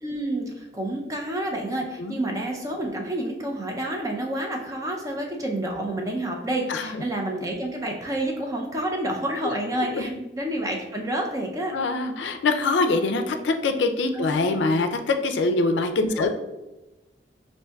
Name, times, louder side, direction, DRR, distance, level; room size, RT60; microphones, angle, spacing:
voice 1, 0.0-11.8 14.1-14.5 16.1-16.3, right 1 dB, 20° right, 1 dB, 0.4 m, -29 dB
voice 2, 11.7-16.3, left 3 dB, 85° left, 7 dB, 0.4 m, -24 dB
5.7 x 2.6 x 2.2 m, 1.0 s
head